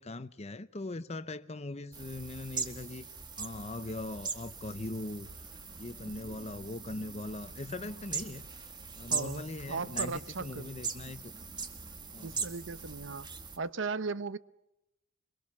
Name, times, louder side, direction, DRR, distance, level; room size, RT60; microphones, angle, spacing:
voice 1, 0.0-3.1 3.4-5.3 5.8-8.6 9.0-11.3 12.1-12.4, left 2 dB, 30° left, 0.7 m, -40 dB
sound 1, 1.9-13.6, right 5 dB, 20° right, 1.7 m, -41 dB
voice 2, 6.0-6.4 9.1-10.7 12.2-13.3 13.6-14.4, right 4 dB, 65° right, 0.8 m, -37 dB
24.5 x 23.0 x 6.1 m
head